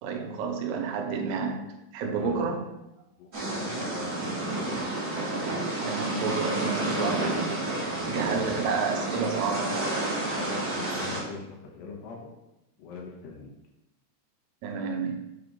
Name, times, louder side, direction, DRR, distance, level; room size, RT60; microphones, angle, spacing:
voice 1, 0.0-2.6 5.8-7.5 8.1-9.8 14.6-15.2, right 5 dB, 80° right, 3 dB, 2.8 m, -30 dB
voice 2, 2.0-2.6 3.1-5.0 7.9-8.6 10.3-12.3 12.8-13.5, left 4 dB, 85° left, -1 dB, 3.4 m, -42 dB
sound 1, 3.3-11.2, right 2 dB, 35° right, 1.7 m, -30 dB
7.5 x 3.8 x 5.4 m, 0.90 s
omnidirectional pair, 4.7 m